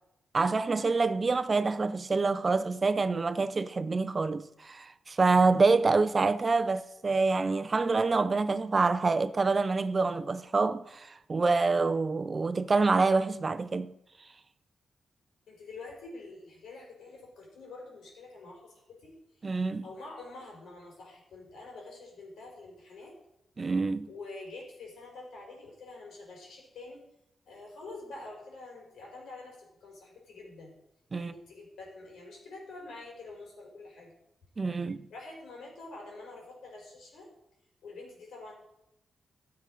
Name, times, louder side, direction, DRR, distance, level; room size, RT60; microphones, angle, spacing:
voice 1, 0.3-13.9 19.4-19.8 23.6-24.1 31.1-31.3 34.6-35.1, right 3 dB, 35° right, 0.7 m, -26 dB
voice 2, 15.5-18.7 19.0-19.6 19.8-23.2 24.1-27.0 27.5-30.7 31.2-34.1 35.1-37.3 37.8-38.5, left 2 dB, 85° left, 5.0 m, -46 dB
14.0 x 7.0 x 6.4 m
cardioid pair, 90°, 0 cm